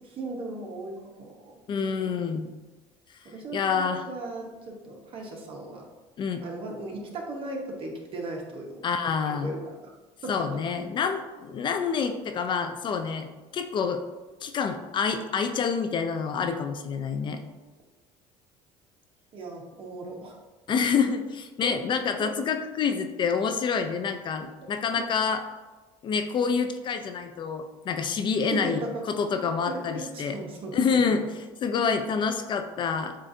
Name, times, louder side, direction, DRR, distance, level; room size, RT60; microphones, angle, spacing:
voice 1, 0.0-2.2 3.2-5.8 6.4-8.8 9.3-9.9 10.2-10.6 19.3-20.4 21.6-22.3 28.5-28.9 29.7-31.2 31.8-32.0, right 2 dB, 45° right, 0 dB, 1.1 m, -37 dB
voice 2, 1.7-2.5 3.5-4.0 6.2-6.4 8.8-9.5 10.3-14.0 14.4-17.4 20.7-25.4 26.0-30.4 30.7-31.2 31.6-33.1, left 6 dB, 40° left, 7 dB, 0.4 m, -27 dB
7.5 x 2.5 x 2.7 m, 1.2 s
cardioid pair, 105°, 12 cm